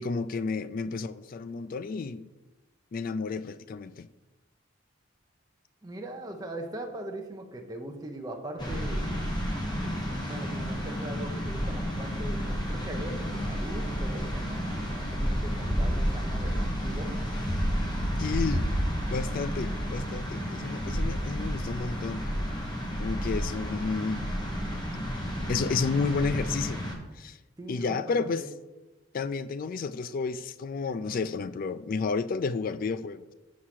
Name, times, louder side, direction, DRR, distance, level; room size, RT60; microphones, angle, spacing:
voice 1, 0.0-2.3 2.9-4.1 18.2-18.7 19.1-22.3 23.0-24.3 25.5-26.8 27.2-27.4 27.7-28.4 29.1-33.3, left 4 dB, 45° left, 0.3 m, -31 dB
voice 2, 5.8-9.1 9.8-17.2 27.6-28.5, right 1 dB, 20° right, 0.7 m, -40 dB
sound 1, 8.6-26.9, equal, 20° left, 1.2 m, -31 dB
6.3 x 4.7 x 5.8 m
head